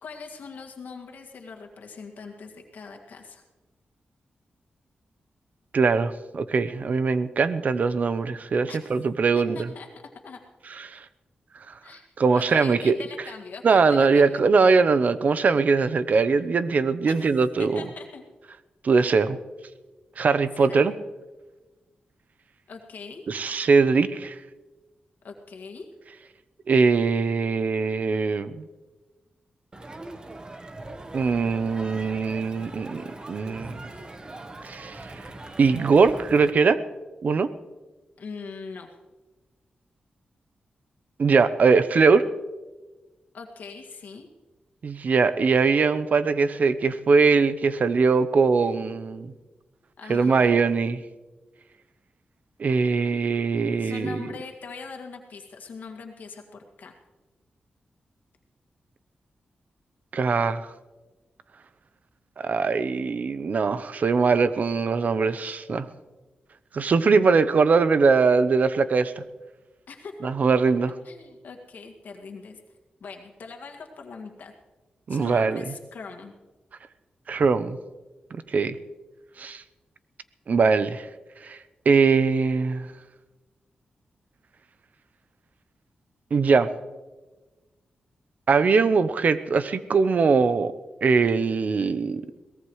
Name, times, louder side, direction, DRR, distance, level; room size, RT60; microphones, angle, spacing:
voice 1, 0.0-3.4 8.7-8.9 9.3-9.9 10.2-10.4 11.8-12.1 12.3-14.4 17.1-18.2 20.5-20.9 22.7-23.2 25.2-25.9 38.2-38.9 43.3-44.3 48.6-48.7 50.0-50.6 53.8-56.9 69.9-70.1 71.0-72.6 73.0-74.5 75.1-76.3, left 4 dB, 75° left, 3 dB, 2.1 m, -41 dB
voice 2, 5.7-9.6 10.8-11.0 12.2-12.9 13.6-17.8 18.8-19.4 20.2-20.9 23.3-24.4 26.7-28.7 31.1-33.0 33.3-33.8 34.6-35.1 35.6-36.8 37.2-37.5 41.2-42.3 44.8-49.3 50.1-51.0 52.6-54.2 60.1-60.7 62.4-65.9 66.7-69.2 70.2-70.9 75.1-75.7 77.3-77.8 78.5-78.8 79.4-79.6 80.5-81.1 81.4-81.6 81.9-82.9 86.3-86.7 88.5-90.7 91.0-92.2, right 4 dB, 60° right, 13 dB, 0.8 m, -21 dB
Crowd, 29.7-36.5, right 2 dB, 30° right, 1.2 m, -41 dB
22.5 x 18.5 x 3.2 m, 1.2 s
cardioid pair, 90°, 3 cm